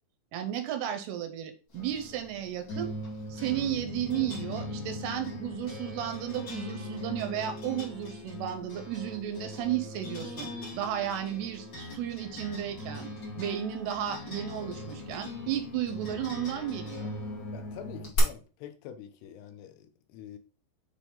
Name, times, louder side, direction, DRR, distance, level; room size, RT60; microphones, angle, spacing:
voice 1, 0.3-2.9 3.3-13.1 13.4-17.1, right 11 dB, 80° right, 2.7 m, -33 dB
sound 1, 1.7-18.2, left 2 dB, 35° left, 1.8 m, -40 dB
sound 2, 6.7-11.9, left 1 dB, 65° left, 2.3 m, -53 dB
voice 2, 17.5-20.4, left 9 dB, 80° left, 2.7 m, -46 dB
8.5 x 3.4 x 3.9 m
omnidirectional pair, 4.9 m